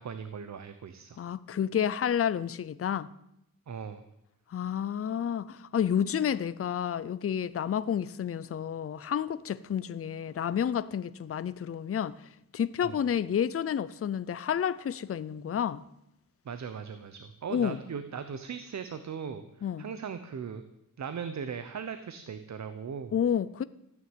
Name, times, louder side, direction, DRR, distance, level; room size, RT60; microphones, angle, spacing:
voice 1, 0.0-1.2 3.7-4.0 12.8-13.0 16.4-19.4 19.8-20.6 21.0-23.1, right 6 dB, 55° right, 1.0 m, -38 dB
voice 2, 1.2-3.1 4.5-12.2 12.5-15.8 17.5-17.8 19.6-19.9 23.1-23.6, left 8 dB, 40° left, 0.6 m, -30 dB
14.5 x 9.6 x 9.2 m
wide cardioid pair, 155°, 34 cm